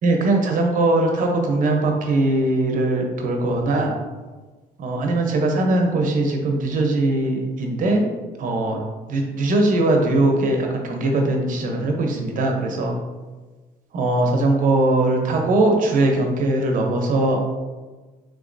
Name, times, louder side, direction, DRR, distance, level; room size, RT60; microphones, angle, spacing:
voice 1, 0.0-3.9 4.8-8.1 8.4-8.8 9.1-12.9 13.9-17.5, right 2 dB, 50° right, 2 dB, 0.7 m, -20 dB
3.5 x 2.9 x 2.6 m, 1.3 s
cardioid pair, 110°, 17 cm